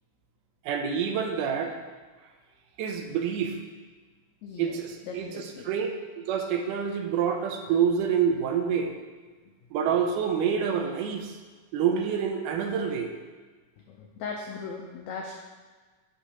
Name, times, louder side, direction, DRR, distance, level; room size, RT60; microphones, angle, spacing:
voice 1, 0.6-1.8 2.8-3.6 4.6-5.9 6.2-9.0 9.7-11.4 11.7-13.1, right 7 dB, 80° right, 4 dB, 2.0 m, -27 dB
voice 2, 4.4-4.8 5.0-5.7 9.5-9.6 13.9-15.4, left 5 dB, 85° left, 1 dB, 1.6 m, -38 dB
7.8 x 6.0 x 2.8 m, 1.4 s
omnidirectional pair, 3.8 m